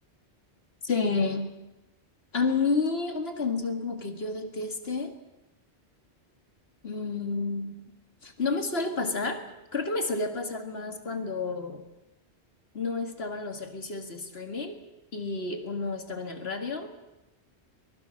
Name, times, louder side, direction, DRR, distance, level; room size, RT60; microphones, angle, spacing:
voice 1, 0.8-1.4 2.3-5.1 6.8-7.8 8.2-9.4 9.7-11.8 12.7-14.8 15.1-16.9, left 4 dB, 65° left, 6 dB, 2.2 m, -30 dB
23.5 x 20.5 x 6.5 m, 0.98 s
omnidirectional pair, 1.1 m